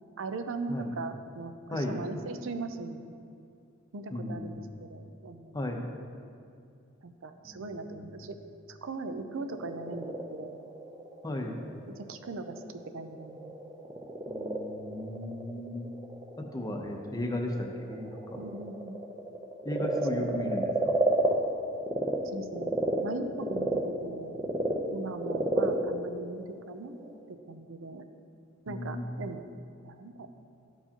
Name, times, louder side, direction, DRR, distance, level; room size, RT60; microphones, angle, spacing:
voice 1, 0.2-3.2 3.9-5.6 7.0-8.4 8.7-10.6 11.9-13.7 18.4-19.0 20.2-20.6 22.2-22.7 23.0-24.4 24.9-28.1 28.7-29.4 29.8-30.3, right 3 dB, 65° right, 8 dB, 0.5 m, -39 dB
voice 2, 4.1-4.7 5.5-5.9 7.4-7.9 11.2-11.5 14.3-15.9 16.4-18.1 19.6-21.0 28.7-29.5, left 1 dB, 20° left, 2 dB, 0.7 m, -35 dB
Frog, 9.3-22.2 22.5-27.2, right 1 dB, 20° right, 0.6 m, -32 dB
13.5 x 4.6 x 2.9 m, 2.4 s
head